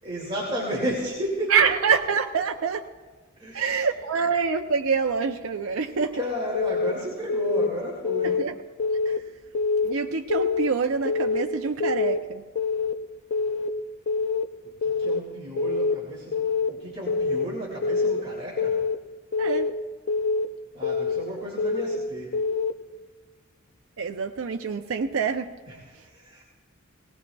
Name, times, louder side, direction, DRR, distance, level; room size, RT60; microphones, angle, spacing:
voice 1, 0.0-1.5 3.4-3.8 6.1-8.4 14.6-18.8 20.7-22.4 25.7-26.4, equal, 25° right, -5 dB, 2.3 m, -33 dB
voice 2, 1.5-2.9 3.5-6.2 8.2-8.6 9.1-9.3 9.8-12.4 19.4-19.7 24.0-25.6 25.9-26.1, right 5 dB, 75° right, 4 dB, 0.6 m, -26 dB
Keyboard (musical) / Alarm, 6.5-6.9 7.3-7.7 8.0-8.4 8.8-9.2 9.5-9.9 10.3-10.7 11.1-11.4 11.8-12.2 12.6-12.9 13.3-13.7 14.1-14.4 14.8-15.2 15.6-15.9 16.3-16.7 17.1-17.4 17.8-18.2 18.6-19.0 19.3-19.7 20.1-20.5 20.8-21.2 21.6-22.0 22.3-22.7, left 4 dB, 55° left, 0.6 m, -25 dB
19.5 x 18.5 x 2.3 m, 1.4 s
head